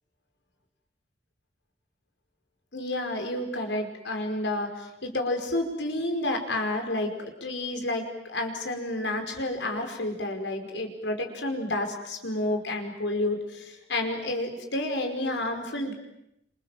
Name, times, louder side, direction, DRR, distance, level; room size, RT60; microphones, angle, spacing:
voice 1, 2.7-15.9, left 1 dB, 85° left, 4 dB, 5.3 m, -30 dB
27.5 x 27.5 x 7.6 m, 0.80 s
head